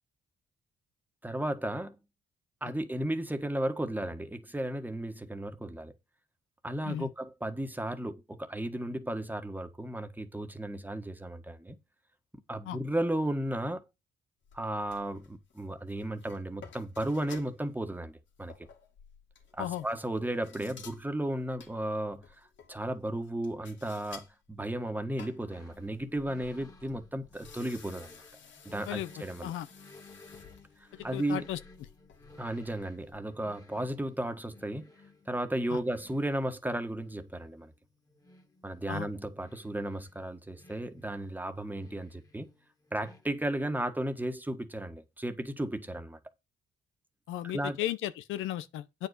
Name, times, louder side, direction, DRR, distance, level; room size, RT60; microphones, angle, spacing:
voice 1, 1.2-2.0 2.6-5.9 6.6-11.8 12.5-13.8 14.5-18.5 19.5-28.1 28.6-29.5 30.8-31.5 32.4-34.9 35.3-37.7 38.6-42.5 42.9-46.2 47.4-47.8, right 1 dB, 10° right, 1.6 m, -34 dB
sound 1, 14.4-17.8 18.3-24.3 24.6-33.2, left 6 dB, 70° left, 2.7 m, -54 dB
sound 2, 25.5-43.2, left 2 dB, 20° left, 2.1 m, -57 dB
voice 2, 30.9-31.6 35.7-35.8 38.9-39.1 47.3-49.1, left 12 dB, 90° left, 0.9 m, -35 dB
8.8 x 5.4 x 6.6 m
cardioid pair, 90°, 20 cm